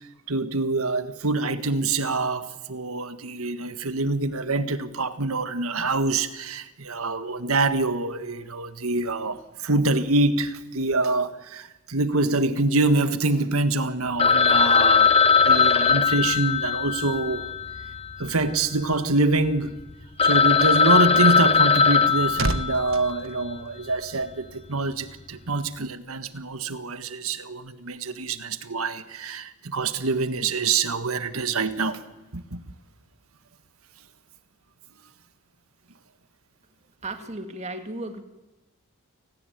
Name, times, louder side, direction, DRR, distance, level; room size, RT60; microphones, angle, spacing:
voice 1, 0.3-17.5 18.2-19.8 20.2-32.0 32.3-32.6, right 3 dB, 90° right, 1.7 m, -25 dB
Telephone, 14.2-18.5 18.8-18.9 19.5-19.6 19.9-20.0 20.2-23.2, left 5 dB, 30° left, 1.1 m, -20 dB
sound 1, 21.9-24.3 24.6-24.9, right 2 dB, 65° right, 1.3 m, -32 dB
voice 2, 37.0-38.2, right 2 dB, 30° right, 2.2 m, -34 dB
30.0 x 18.5 x 9.4 m
head